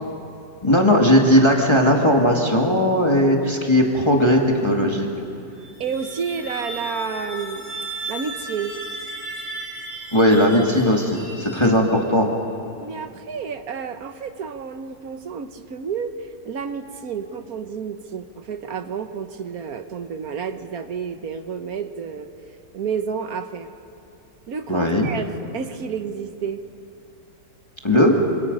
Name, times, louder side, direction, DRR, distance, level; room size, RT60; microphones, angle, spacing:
voice 1, 0.6-5.1 10.1-12.3 24.7-25.1 27.8-28.1, equal, 15° left, 0 dB, 2.0 m, -17 dB
sound 1, 5.5-12.2, right 1 dB, 25° right, 5.5 m, -35 dB
voice 2, 5.8-8.7 11.5-11.7 12.8-22.3 22.7-23.7 24.5-26.6, right 6 dB, 60° right, 8 dB, 1.4 m, -30 dB
26.5 x 26.0 x 5.4 m, 2.7 s
omnidirectional pair, 1.9 m